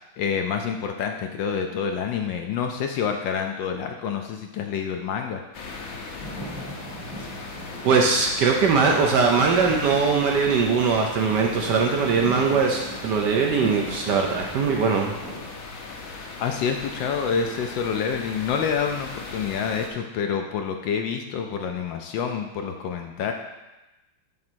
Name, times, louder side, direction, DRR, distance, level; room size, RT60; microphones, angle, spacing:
voice 1, 0.2-5.4 16.4-23.3, left 6 dB, 75° left, 4 dB, 1.2 m, -27 dB
sound 1, 5.5-19.9, left 3 dB, 55° left, 1.0 m, -37 dB
sound 2, 6.2-15.5, equal, 20° right, 0.9 m, -39 dB
voice 2, 7.8-15.1, right 5 dB, 65° right, 1 dB, 1.1 m, -21 dB
7.3 x 3.8 x 6.1 m, 1.0 s
omnidirectional pair, 2.3 m